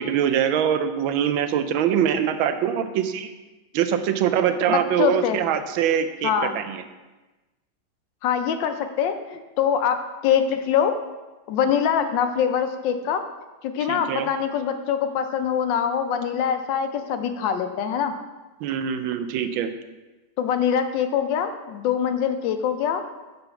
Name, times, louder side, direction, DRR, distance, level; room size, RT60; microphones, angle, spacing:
voice 1, 0.0-3.3 3.7-6.8 13.9-14.3 18.6-19.7, right 9 dB, 85° right, 9 dB, 1.4 m, -23 dB
voice 2, 4.7-5.4 6.2-6.5 8.2-11.0 11.5-13.2 13.6-18.1 20.4-23.0, left 8 dB, 75° left, 8 dB, 1.2 m, -24 dB
6.9 x 4.0 x 5.6 m, 1.1 s
omnidirectional pair, 2.1 m